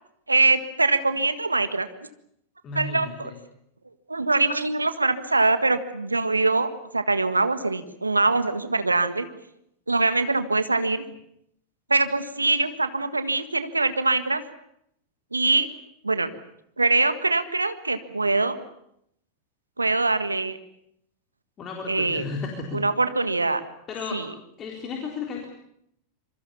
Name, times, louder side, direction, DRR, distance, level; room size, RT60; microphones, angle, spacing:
voice 1, 0.3-1.9 2.7-3.3 4.1-9.3 9.9-11.0 11.9-14.4 15.3-15.7 16.0-16.3 16.8-18.6 19.8-20.6 21.9-22.2 22.7-23.6 24.1-24.2, right 3 dB, 80° right, 11 dB, 1.7 m, -23 dB
voice 2, 2.6-3.4 21.6-22.8 23.9-24.2 24.6-25.5, left 4 dB, 30° left, 1 dB, 3.8 m, -33 dB
26.5 x 23.5 x 7.1 m, 0.73 s
figure-of-eight pair, 90°, 0 cm